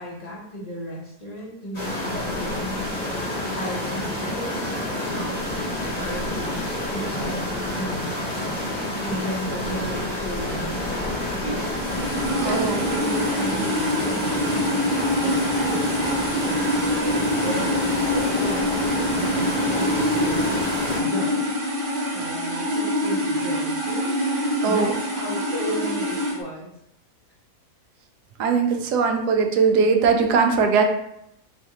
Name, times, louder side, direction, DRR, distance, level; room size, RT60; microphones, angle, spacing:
voice 1, 0.0-4.8 5.1-6.4 6.9-7.4 7.7-8.5 9.0-11.6 12.4-15.9 16.8-18.7 19.2-20.6 21.0-21.6 22.1-24.2 24.6-26.7, equal, 45° left, -5 dB, 0.5 m, -34 dB
sound 1, 1.7-21.0, left 1 dB, 30° left, 1.1 m, -28 dB
sound 2, 11.7-26.4, equal, 45° right, 0.9 m, -25 dB
voice 2, 12.4-12.9 24.6-25.0 28.4-30.8, right 5 dB, 80° right, 4 dB, 1.1 m, -20 dB
3.4 x 3.2 x 2.8 m, 0.78 s
omnidirectional pair, 1.7 m